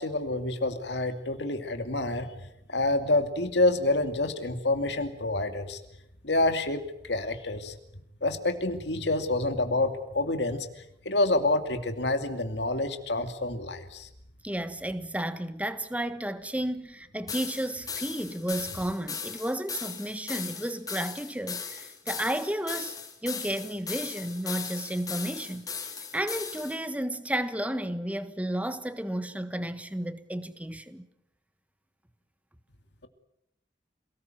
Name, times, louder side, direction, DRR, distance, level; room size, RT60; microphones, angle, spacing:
voice 1, 0.0-2.3 2.7-5.8 6.2-7.7 8.2-10.7 11.0-14.1, left 2 dB, 70° left, 2.6 m, -27 dB
voice 2, 14.4-23.0 23.2-25.7 26.1-31.1, right 1 dB, 10° right, 1.4 m, -32 dB
sound 1, 17.3-26.8, left 6 dB, 20° left, 4.0 m, -38 dB
27.5 x 19.5 x 9.3 m
head